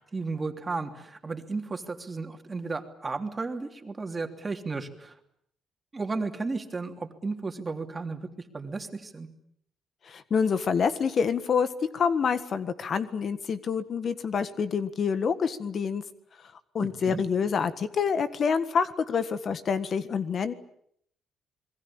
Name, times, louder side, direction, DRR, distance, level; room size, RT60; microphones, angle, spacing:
voice 1, 0.0-5.2 5.9-8.3 8.5-9.3 16.8-17.2, right 3 dB, 25° right, 6 dB, 3.1 m, -34 dB
voice 2, 10.1-11.7 11.9-16.0 16.7-20.5, left 6 dB, 50° left, 12 dB, 1.6 m, -27 dB
27.5 x 21.5 x 8.8 m, 0.70 s
cardioid pair, 90°, 0 cm